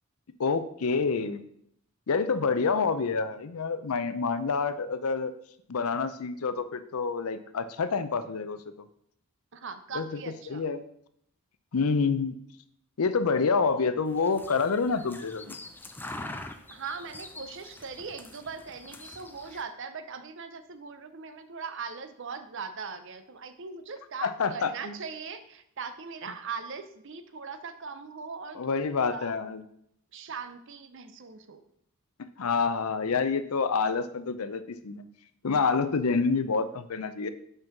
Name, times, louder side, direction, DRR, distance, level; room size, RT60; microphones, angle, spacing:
voice 1, 0.4-1.4 2.1-5.3 5.7-8.6 9.9-10.2 10.5-10.8 11.7-12.4 13.0-15.6 24.2-24.9 28.5-29.6 32.4-35.0 35.4-37.3, left 4 dB, 80° left, 12 dB, 0.6 m, -27 dB
voice 2, 9.5-10.6 15.5-15.6 16.7-28.8 29.1-29.3 30.1-31.6, right 5 dB, 55° right, 10 dB, 0.7 m, -40 dB
sound 1, 14.1-19.6, left 2 dB, 10° left, 0.4 m, -44 dB
5.6 x 5.4 x 5.9 m, 0.72 s
head